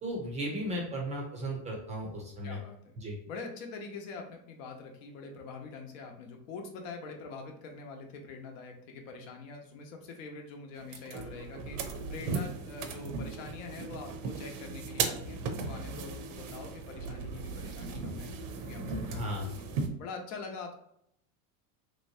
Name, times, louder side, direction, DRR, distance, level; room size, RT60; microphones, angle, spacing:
voice 1, 0.0-2.6 3.0-3.2 19.1-19.5, equal, 15° right, 0 dB, 0.5 m, -35 dB
voice 2, 2.4-2.9 3.3-18.3 18.5-19.2 19.4-19.6 20.0-20.7, left 4 dB, 70° left, 3 dB, 0.9 m, -44 dB
sound 1, 10.8-19.9, right 4 dB, 60° right, 0.7 m, -37 dB
3.2 x 2.9 x 2.7 m, 0.73 s
supercardioid pair, 150°, 42 cm